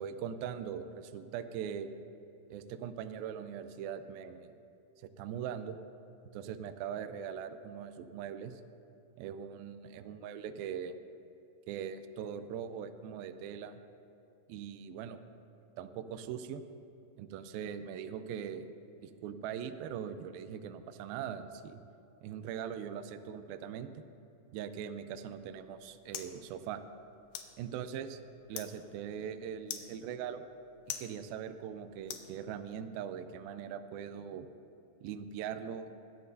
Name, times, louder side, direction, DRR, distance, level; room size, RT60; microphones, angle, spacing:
voice 1, 0.0-1.9 2.5-4.6 5.2-5.8 6.3-8.6 9.2-11.0 11.7-13.8 14.5-15.2 15.8-16.6 17.2-18.7 19.0-21.8 22.2-23.9 24.5-26.8 27.6-28.2 28.5-30.4 31.0-34.5 35.0-35.9, right 8 dB, 85° right, 9 dB, 2.1 m, -41 dB
sound 1, 25.3-32.9, left 9 dB, 75° left, 2.4 m, -48 dB
21.5 x 12.0 x 2.7 m, 2.8 s
omnidirectional pair, 4.8 m